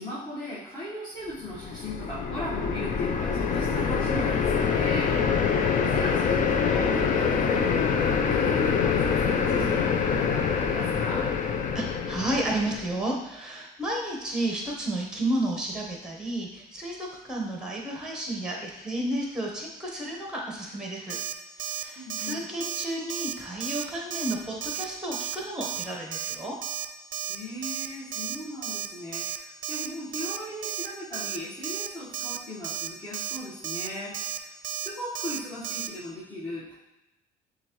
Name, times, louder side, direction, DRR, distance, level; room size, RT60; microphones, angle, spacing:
voice 1, 0.0-5.3 5.8-11.3 22.0-22.5 27.3-34.2 34.7-36.7, equal, 25° left, -11 dB, 1.3 m, -37 dB
sound 1, 1.5-12.9, left 6 dB, 50° left, 0.5 m, -25 dB
voice 2, 11.7-21.2 21.6-26.6, right 1 dB, 5° right, -1 dB, 1.1 m, -32 dB
Alarm, 21.1-21.3 21.6-21.8 22.1-22.3 22.6-22.8 23.1-23.3 23.6-23.8 24.1-24.3 24.6-24.8 25.1-25.4 25.6-25.8 26.1-26.3 26.6-26.9 27.1-27.4 27.6-27.9 28.1-28.4 28.6-28.9 29.1-29.4 29.6-29.9 30.1-30.4 30.6-30.9 31.1-31.4 31.6-31.9 32.1-32.4 32.6-32.9 33.1-33.4 33.6-33.9 34.1-34.4 34.6-34.9 35.1-35.4 35.6-35.9, right 10 dB, 55° right, 0.4 m, -33 dB
7.0 x 2.5 x 3.0 m, 0.98 s
cardioid pair, 110°, 17 cm